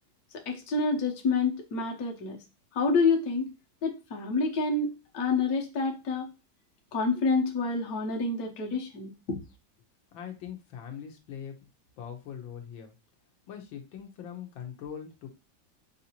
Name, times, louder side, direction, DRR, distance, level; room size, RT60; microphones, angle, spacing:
voice 1, 0.5-2.4 2.7-3.5 3.8-6.3 6.9-9.4, left 4 dB, 55° left, 0 dB, 1.3 m, -28 dB
voice 2, 10.1-11.5 12.0-12.9 13.5-15.3, left 8 dB, 80° left, 4 dB, 1.6 m, -41 dB
5.8 x 2.7 x 2.8 m, 0.29 s
omnidirectional pair, 2.1 m